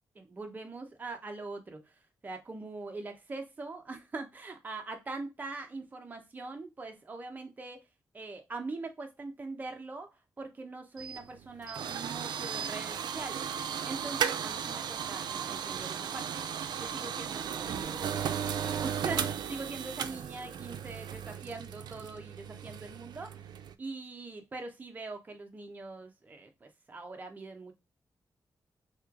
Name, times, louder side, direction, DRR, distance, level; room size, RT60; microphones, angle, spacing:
voice 1, 0.1-1.9 2.2-7.8 8.1-10.1 10.4-13.4 13.8-16.3 16.8-23.4 23.8-27.7, right 3 dB, 25° right, 0.6 m, -42 dB
sound 1, 11.0-23.7, right 8 dB, 80° right, 0.3 m, -36 dB
3.1 x 2.9 x 3.6 m
wide cardioid pair, 175°, 7 cm